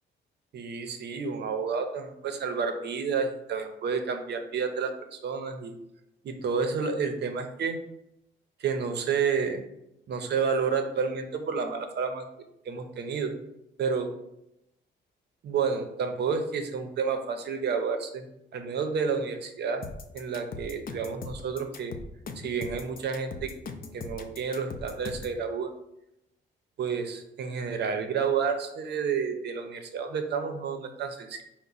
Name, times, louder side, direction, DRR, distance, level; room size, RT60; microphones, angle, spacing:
voice 1, 0.5-5.7 6.2-7.8 8.6-9.6 10.1-12.3 12.7-13.3 13.8-14.1 15.4-18.3 18.5-19.9 20.1-21.9 22.4-23.5 23.9-25.7 26.8-31.4, right 5 dB, 60° right, 6 dB, 0.6 m, -30 dB
sound 1, 19.8-25.4, left 4 dB, 45° left, 0.5 m, -40 dB
4.6 x 2.1 x 3.9 m, 0.83 s
cardioid pair, 90°, 20 cm